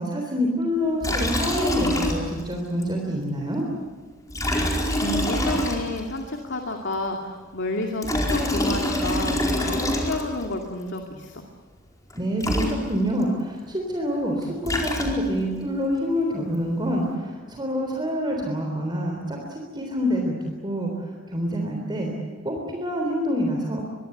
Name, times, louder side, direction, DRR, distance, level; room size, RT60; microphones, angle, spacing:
voice 1, 0.0-3.7 12.1-20.9 21.3-22.1 22.4-23.8, equal, 20° right, 1 dB, 3.6 m, -26 dB
Liquid, 1.0-2.5 2.8-2.9 4.3-6.2 7.8-10.5 12.1-12.2 12.4-13.2 14.4-15.5, left 1 dB, 15° left, 4.6 m, -25 dB
voice 2, 5.0-11.5, left 2 dB, 60° left, 2 dB, 2.4 m, -30 dB
24.5 x 23.0 x 8.1 m, 1.6 s
head